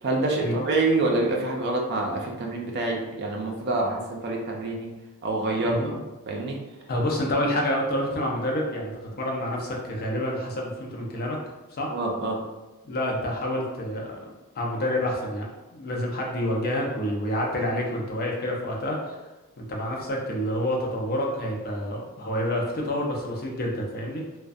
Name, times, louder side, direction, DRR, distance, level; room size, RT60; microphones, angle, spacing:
voice 1, 0.0-4.9 5.2-5.8 6.3-6.6 11.9-12.4, right 2 dB, 50° right, 0 dB, 0.5 m, -26 dB
voice 2, 6.9-11.4 11.7-11.9 12.8-14.1 14.5-15.5 15.7-19.2 19.6-24.4, left 1 dB, 45° left, -1 dB, 0.5 m, -28 dB
2.4 x 2.2 x 2.5 m, 1.1 s
head